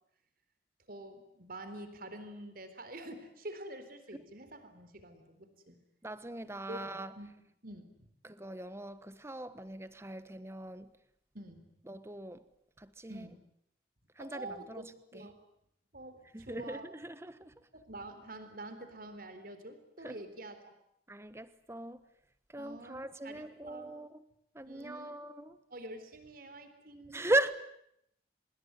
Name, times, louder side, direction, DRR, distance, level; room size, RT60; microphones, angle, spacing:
voice 1, 0.9-5.8 6.7-6.8 7.2-7.3 7.6-8.1 11.3-11.6 13.1-13.4 14.2-15.4 15.9-16.9 17.7-20.7 22.6-23.9 24.7-25.1 25.7-27.3, right 1 dB, 55° right, 4.0 m, -47 dB
voice 2, 6.0-7.2 8.2-10.9 11.9-12.4 12.8-13.3 14.2-14.8 15.1-15.3 16.3-17.5 20.0-20.2 21.1-22.0 22.5-24.2 24.5-25.6 27.1-27.5, right 1 dB, 15° right, 1.3 m, -38 dB
25.5 x 21.5 x 9.5 m
head